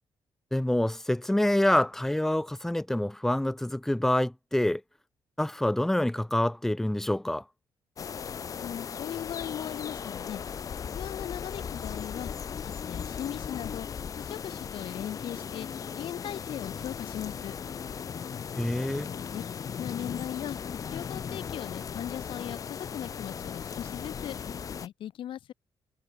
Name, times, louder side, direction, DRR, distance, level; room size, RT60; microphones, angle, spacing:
voice 1, 0.5-4.8 5.4-7.4 18.6-19.1, left 1 dB, 5° left, 1.3 m, -26 dB
sound 1, 8.0-24.9, left 7 dB, 40° left, 1.4 m, -37 dB
voice 2, 8.4-10.4 11.0-12.3 12.6-14.0 14.3-15.7 16.0-17.5 19.3-19.4 19.8-20.6 20.9-24.5 24.8-25.5, left 11 dB, 70° left, 1.8 m, -38 dB
wide cardioid pair, 175°, 9 cm